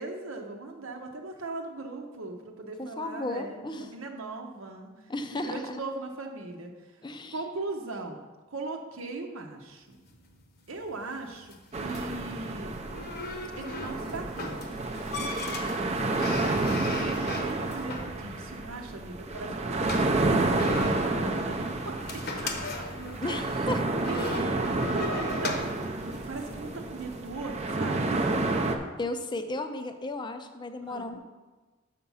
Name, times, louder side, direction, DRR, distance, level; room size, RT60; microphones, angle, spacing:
voice 1, 0.0-4.9 5.3-6.7 7.3-8.2 8.5-10.0 10.7-12.8 13.5-15.9 16.8-22.5 24.1-25.6 26.0-28.3 30.8-31.1, right 3 dB, 75° right, 2 dB, 0.8 m, -39 dB
voice 2, 2.8-3.9 5.1-5.8 7.0-7.4 23.2-23.9 24.2-24.4 29.0-31.2, left 2 dB, 20° left, 8 dB, 0.5 m, -34 dB
sound 1, 9.9-27.2, left 2 dB, 50° left, 0.9 m, -39 dB
sound 2, 11.7-28.8, right 2 dB, 30° right, 0.6 m, -30 dB
6.6 x 5.9 x 5.5 m, 1.3 s
head